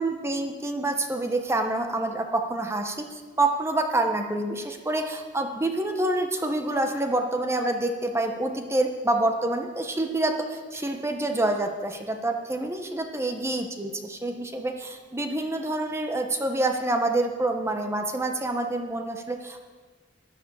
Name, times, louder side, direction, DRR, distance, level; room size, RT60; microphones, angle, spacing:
voice 1, 0.0-3.0 3.4-19.6, right 2 dB, 15° right, 4 dB, 1.1 m, -27 dB
11.5 x 11.0 x 7.2 m, 1.4 s
head